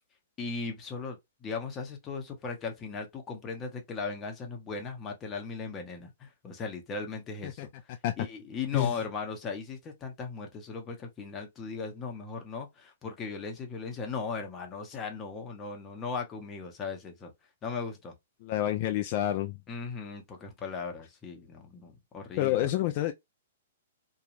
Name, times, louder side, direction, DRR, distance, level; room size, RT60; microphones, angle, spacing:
voice 1, 0.4-7.9 8.2-17.3 17.6-18.1 19.7-22.9, left 4 dB, 20° left, 0.8 m, -38 dB
voice 2, 18.4-19.6 22.4-23.1, left 13 dB, 40° left, 0.3 m, -28 dB
2.9 x 2.3 x 2.5 m
hypercardioid pair, 155°, 0 cm